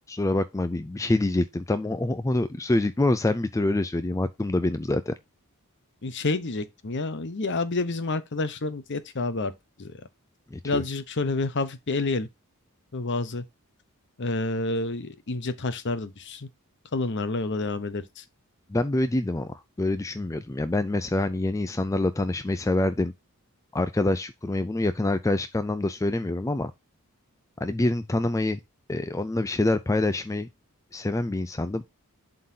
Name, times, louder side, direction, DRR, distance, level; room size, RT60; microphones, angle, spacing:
voice 1, 0.1-5.1 10.5-10.8 18.7-23.1 23.7-26.7 27.6-28.6 28.9-30.5 30.9-31.8, left 2 dB, 15° left, 0.4 m, -26 dB
voice 2, 6.0-9.5 9.8-10.0 10.6-12.3 12.9-13.4 14.2-16.5 16.9-18.2, left 3 dB, 55° left, 0.8 m, -29 dB
11.5 x 3.9 x 2.7 m
head